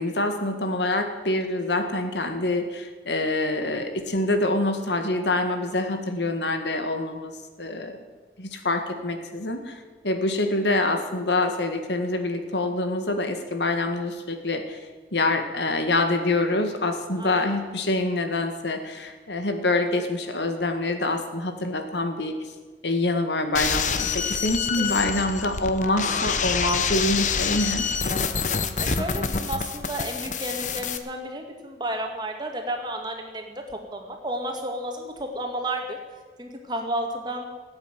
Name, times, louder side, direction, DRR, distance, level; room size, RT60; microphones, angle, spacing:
voice 1, 0.0-7.3 7.6-8.0 8.4-9.8 10.0-14.8 15.1-22.4 22.8-27.8, left 2 dB, 85° left, 6 dB, 2.0 m, -26 dB
voice 2, 17.2-17.6 24.8-24.9 25.2-25.4 28.8-33.6 33.9-36.0 36.4-37.5, right 1 dB, 25° right, 3 dB, 2.1 m, -32 dB
sound 1, 23.5-31.0, left 6 dB, 45° left, 1.0 m, -27 dB
16.5 x 8.8 x 9.2 m, 1.3 s
head